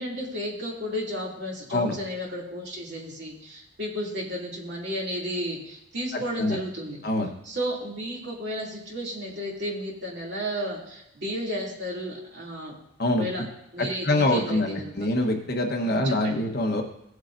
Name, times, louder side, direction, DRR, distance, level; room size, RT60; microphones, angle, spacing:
voice 1, 0.0-7.0 7.4-12.8 13.2-13.5 13.7-15.1 15.8-16.4, equal, 55° right, -3 dB, 2.8 m, -33 dB
voice 2, 6.1-6.6 7.0-7.3 13.0-13.3 14.0-16.8, left 1 dB, 50° left, 2 dB, 1.3 m, -25 dB
16.5 x 8.0 x 2.7 m, 0.80 s
head